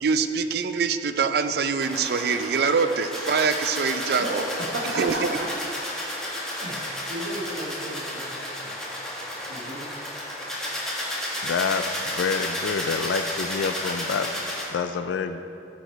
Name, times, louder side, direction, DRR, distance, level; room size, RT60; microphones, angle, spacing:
voice 1, 0.0-4.4 5.0-5.4, right 5 dB, 55° right, 10 dB, 0.4 m, -24 dB
sound 1, 1.8-14.6, left 1 dB, 5° left, 1.3 m, -32 dB
voice 2, 4.7-5.5 6.6-6.8 7.1-8.8 9.5-9.9, right 1 dB, 85° right, -2 dB, 1.6 m, -34 dB
voice 3, 11.4-14.3 14.7-15.4, left 5 dB, 85° left, 9 dB, 0.3 m, -27 dB
13.0 x 5.0 x 4.5 m, 2.8 s
head